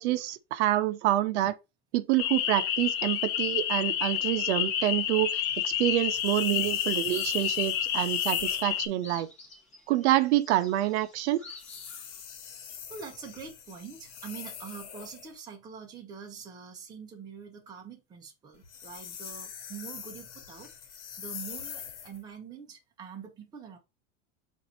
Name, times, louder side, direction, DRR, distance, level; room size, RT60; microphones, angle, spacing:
voice 1, 0.0-1.5 1.9-9.3 9.9-11.4, right 14 dB, 75° right, 0.6 m, -27 dB
sound 1, 2.2-8.9, left 10 dB, 65° left, 0.8 m, -29 dB
sound 2, 5.3-12.2, left 3 dB, 20° left, 1.1 m, -52 dB
sound 3, 6.1-8.7 11.5-15.3 18.5-22.2, left 8 dB, 90° left, 1.1 m, -43 dB
voice 2, 12.5-23.8, right 6 dB, 10° right, 0.6 m, -45 dB
4.0 x 2.6 x 4.2 m
supercardioid pair, 175°, 35 cm